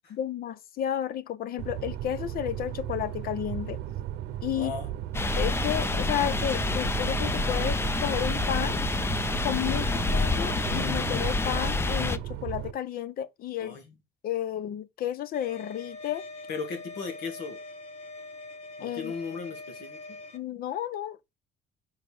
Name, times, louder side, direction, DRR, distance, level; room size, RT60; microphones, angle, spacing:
voice 1, 0.1-3.8 4.4-4.7 5.4-8.8 9.4-13.8 14.2-16.2 18.8-19.1 20.3-21.3, left 11 dB, 60° left, 0.7 m, -32 dB
sound 1, 1.6-12.7, right 12 dB, 80° right, 0.7 m, -35 dB
voice 2, 4.5-4.9 9.7-9.8 13.6-13.8 16.5-17.6 18.8-20.0, left 5 dB, 80° left, 2.4 m, -36 dB
sound 2, 5.1-12.2, left 3 dB, 15° left, 0.5 m, -28 dB
sound 3, 15.3-20.4, left 2 dB, 40° left, 1.3 m, -43 dB
5.0 x 4.9 x 5.3 m
cardioid pair, 110°, 17 cm